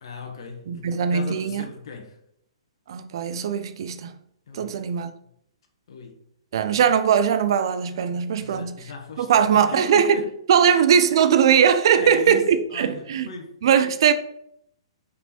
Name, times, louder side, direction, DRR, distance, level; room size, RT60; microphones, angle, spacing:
voice 1, 0.0-2.2 4.5-4.9 5.9-6.2 6.5-6.8 8.4-10.3 10.6-10.8 11.9-13.6, left 4 dB, 60° left, 1.2 m, -38 dB
voice 2, 0.7-1.7 2.9-4.2 4.5-5.1 6.5-8.8 9.2-10.2 10.5-13.3 13.6-14.1, right 8 dB, 55° right, 0.6 m, -20 dB
5.5 x 4.9 x 4.2 m
figure-of-eight pair, 120°, 3 cm